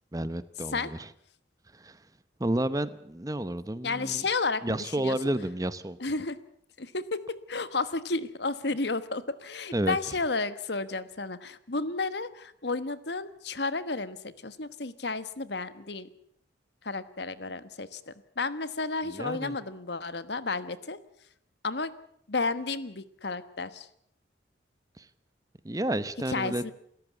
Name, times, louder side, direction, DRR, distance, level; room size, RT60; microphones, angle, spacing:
voice 1, 0.1-1.1 1.7-2.1 2.4-4.2 4.6-6.0 9.7-10.0 19.1-19.6 25.0-25.1 25.6-26.7, right 1 dB, 20° right, 15 dB, 0.8 m, -31 dB
voice 2, 3.8-5.2 6.0-6.4 6.8-7.2 7.5-16.1 16.8-21.0 21.6-21.9 22.3-23.9 26.3-26.7, left 3 dB, 65° left, 14 dB, 1.3 m, -32 dB
28.0 x 14.0 x 8.3 m, 0.70 s
head